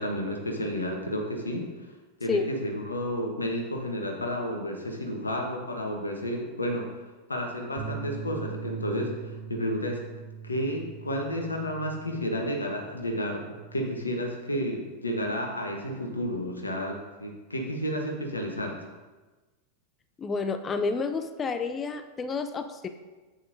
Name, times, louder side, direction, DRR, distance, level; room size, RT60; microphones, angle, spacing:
voice 1, 0.0-1.7 2.2-6.9 7.3-10.0 10.4-13.4 13.7-18.7, equal, 80° left, 2 dB, 1.1 m, -31 dB
Bass guitar, 7.8-14.0, right 6 dB, 30° right, 0.9 m, -42 dB
voice 2, 20.2-22.9, left 4 dB, 20° left, 8 dB, 0.4 m, -30 dB
8.0 x 7.1 x 2.6 m, 1.2 s
figure-of-eight pair, 90°, 0 cm